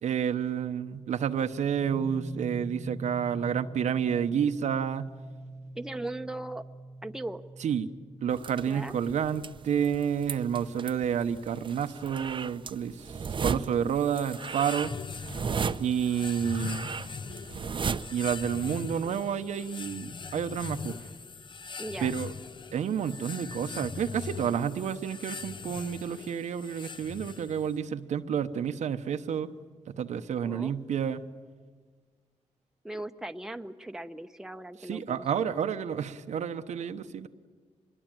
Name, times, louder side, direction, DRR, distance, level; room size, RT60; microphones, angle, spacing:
voice 1, 0.0-5.1 7.6-7.9 8.2-14.9 15.8-16.9 18.1-21.0 22.0-22.3 22.7-29.5 29.9-31.3 34.9-37.3, right 8 dB, 90° right, 8 dB, 1.0 m, -30 dB
sound 1, 1.8-14.7, right 2 dB, 80° left, 6.7 m, -45 dB
voice 2, 5.7-6.6 7.0-7.4 8.7-9.0 21.8-22.1 30.4-30.7 32.8-35.4, right 1 dB, 5° right, 7 dB, 0.8 m, -38 dB
sound 2, 8.3-19.0, right 5 dB, 45° right, 0.7 m, -36 dB
sound 3, 13.9-27.8, left 5 dB, 40° left, 0.7 m, -41 dB
25.0 x 21.5 x 9.0 m, 1.5 s
cardioid pair, 100°, 12 cm